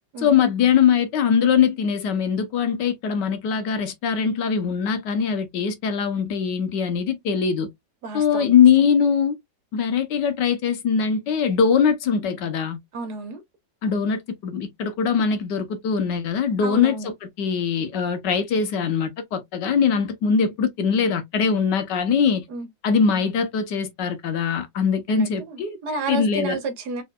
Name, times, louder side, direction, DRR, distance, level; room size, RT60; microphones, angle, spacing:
voice 1, 0.2-7.7 8.1-9.4 9.7-12.8 13.8-22.4 22.8-25.8 26.1-26.6, left 6 dB, 70° left, 1.4 m, -22 dB
voice 2, 8.0-8.6 12.9-13.4 16.6-17.1 22.5-22.7 25.1-27.0, right 3 dB, 60° right, 1.4 m, -31 dB
4.3 x 3.7 x 2.2 m
omnidirectional pair, 2.1 m